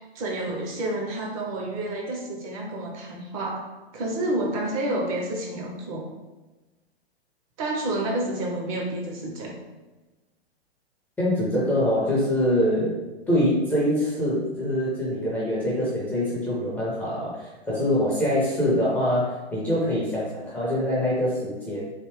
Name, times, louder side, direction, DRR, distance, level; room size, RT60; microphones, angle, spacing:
voice 1, 0.1-3.7 3.9-6.1 7.6-9.6, right 1 dB, 35° right, 0 dB, 0.6 m, -29 dB
voice 2, 11.2-13.0 13.3-21.8, left 1 dB, 5° left, -7 dB, 0.5 m, -24 dB
3.4 x 2.7 x 3.0 m, 1.1 s
figure-of-eight pair, 120°, 33 cm